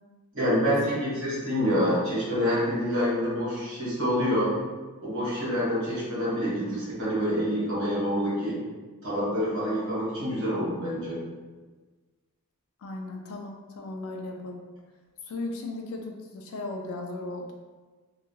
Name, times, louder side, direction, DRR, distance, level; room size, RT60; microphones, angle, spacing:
voice 1, 0.3-4.5 5.0-8.6 9.0-11.2, equal, 65° right, -7 dB, 1.3 m, -27 dB
voice 2, 12.8-14.6 15.2-17.5, left 2 dB, 75° left, 2 dB, 0.4 m, -36 dB
2.8 x 2.3 x 2.7 m, 1.3 s
head